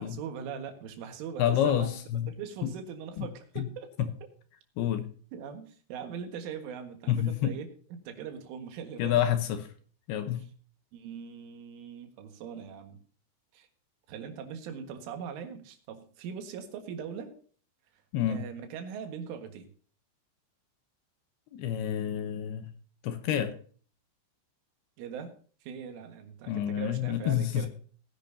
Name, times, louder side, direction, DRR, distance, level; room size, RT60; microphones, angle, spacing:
voice 1, 0.0-2.0 2.3-3.9 5.3-9.2 10.3-10.4 10.9-13.0 13.5-13.7 14.1-17.3 17.9-19.7 25.0-25.4 25.6-27.7, right 7 dB, 90° right, 4.2 m, -41 dB
voice 2, 1.4-2.3 2.6-2.7 3.2-3.3 3.6-3.7 4.0-4.1 4.8-5.1 7.1-7.6 9.0-9.7 10.1-10.4 18.1-18.4 21.5-22.7 23.0-23.6 26.5-27.7, left 10 dB, 75° left, 2.5 m, -28 dB
18.5 x 10.5 x 2.7 m
omnidirectional pair, 5.5 m